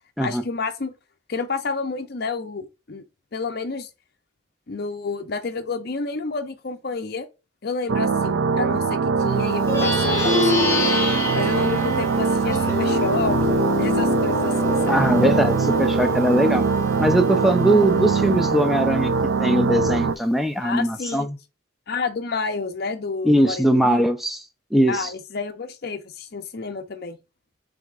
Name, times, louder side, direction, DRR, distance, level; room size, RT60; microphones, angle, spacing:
voice 1, 0.2-0.9 1.3-3.0 3.3-3.9 4.7-7.3 7.6-10.8 11.3-13.4 13.8-15.0 20.6-21.3 21.9-24.1 24.9-27.2, left 4 dB, 50° left, 0.6 m, -30 dB
sound 1, 7.9-20.2, right 5 dB, 75° right, 0.4 m, -22 dB
Plucked string instrument, 9.5-19.3, left 3 dB, 15° left, 1.1 m, -27 dB
voice 2, 14.9-16.7 17.0-21.4 23.2-24.4 24.7-25.1, right 1 dB, ahead, 0.4 m, -20 dB
7.0 x 2.7 x 2.4 m
head